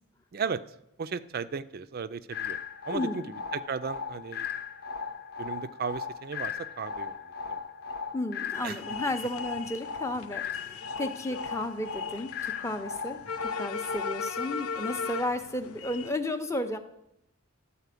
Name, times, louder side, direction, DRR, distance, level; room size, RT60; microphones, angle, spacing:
voice 1, 0.3-0.6 1.0-2.6 2.9-4.5 5.4-7.2 7.4-7.6 8.6-8.8, right 5 dB, 45° right, 14 dB, 0.4 m, -35 dB
sound 1, 2.3-14.3, left 6 dB, 45° left, 0.8 m, -37 dB
voice 2, 2.9-3.3 8.1-16.8, left 1 dB, 15° left, 7 dB, 0.6 m, -33 dB
sound 2, 8.5-16.1, left 5 dB, 75° left, 0.5 m, -38 dB
12.5 x 4.2 x 8.3 m, 0.85 s
head